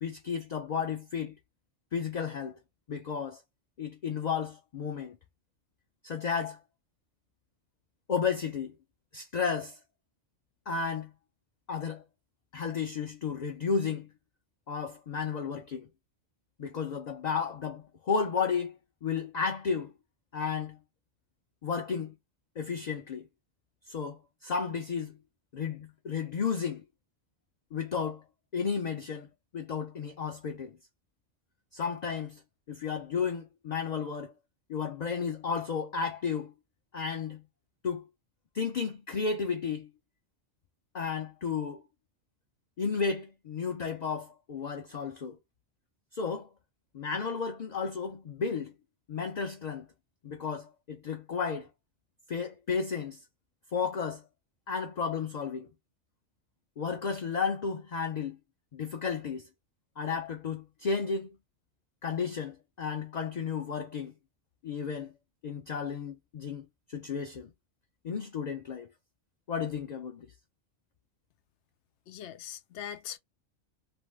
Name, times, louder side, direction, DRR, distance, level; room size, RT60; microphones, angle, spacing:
voice 1, 0.0-1.4 1.9-2.6 2.9-3.4 3.8-5.2 6.0-6.6 8.1-8.7 9.1-9.8 10.7-11.1 11.7-12.0 12.5-14.1 14.7-15.9 16.6-19.9 20.3-20.8 21.6-22.1 22.6-23.3 23.9-25.2 25.5-26.8 27.7-28.2 28.5-30.8 31.7-32.4 32.7-34.3 34.7-36.5 36.9-37.4 37.8-38.1 38.5-39.9 40.9-41.8 42.8-45.4 46.1-46.5 46.9-48.7 49.1-49.9 50.2-51.7 52.3-53.2 53.7-54.3 54.7-55.7 56.8-58.4 58.7-59.5 60.0-61.4 62.0-64.1 64.6-65.1 65.4-67.5 68.0-68.9 69.5-70.3, left 5 dB, 50° left, 0.5 m, -33 dB
voice 2, 72.1-73.2, left 9 dB, 85° left, 0.9 m, -41 dB
2.6 x 2.3 x 3.0 m
omnidirectional pair, 1.1 m